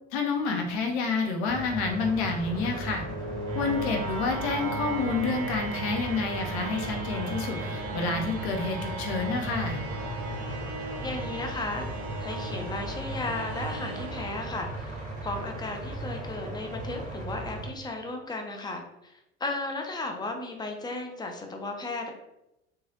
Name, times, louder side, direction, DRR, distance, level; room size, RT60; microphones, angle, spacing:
voice 1, 0.1-3.0 3.5-9.8, left 4 dB, 65° left, 2 dB, 0.8 m, -29 dB
sound 1, 1.5-17.7, right 1 dB, 25° right, 1.4 m, -37 dB
sound 2, 2.1-15.2, right 3 dB, 60° right, 0.6 m, -37 dB
voice 2, 11.0-11.9 12.2-22.1, left 2 dB, 10° left, 3 dB, 0.4 m, -35 dB
3.1 x 2.3 x 2.6 m, 0.88 s
hypercardioid pair, 70°, 36 cm